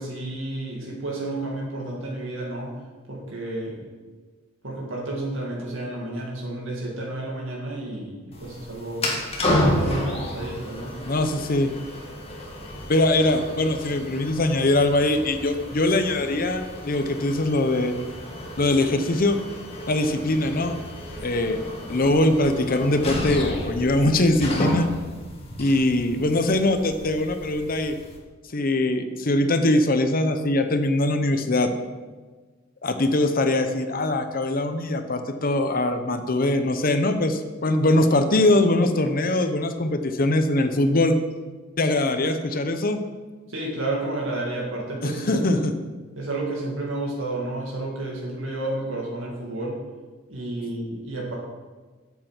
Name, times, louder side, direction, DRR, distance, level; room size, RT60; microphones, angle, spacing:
voice 1, 0.0-2.7 3.1-3.9 4.6-9.1 9.7-10.9 43.5-45.5 46.2-49.8 50.3-51.3, right 2 dB, 85° right, -3 dB, 2.1 m, -31 dB
sound 1, 8.3-28.2, left 1 dB, 30° left, 1.8 m, -31 dB
voice 2, 11.1-11.7 12.9-17.9 18.6-19.4 19.9-20.8 21.2-21.6 21.9-24.9 25.6-27.9 28.5-31.7 32.8-41.2 41.8-43.0 45.0-45.7, left 1 dB, 50° left, 8 dB, 0.8 m, -22 dB
9.0 x 7.9 x 5.8 m, 1.3 s
head